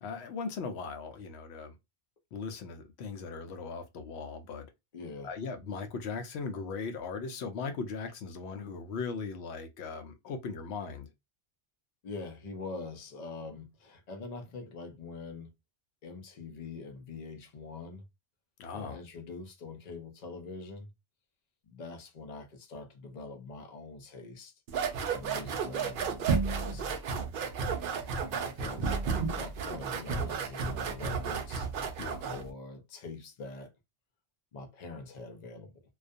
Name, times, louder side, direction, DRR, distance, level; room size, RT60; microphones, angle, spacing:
voice 1, 0.0-1.7 2.3-4.7 5.2-11.1 18.6-19.0 32.0-32.2, left 4 dB, 80° left, 0.8 m, -38 dB
voice 2, 4.9-5.3 12.0-15.5 16.0-18.0 18.7-20.9 21.6-24.5 25.1-27.0 28.4-31.7 32.3-33.7 34.5-35.8, left 3 dB, 50° left, 0.6 m, -44 dB
sound 1, 24.7-32.5, right 5 dB, 60° right, 0.6 m, -32 dB
2.3 x 2.2 x 2.5 m
omnidirectional pair, 1.1 m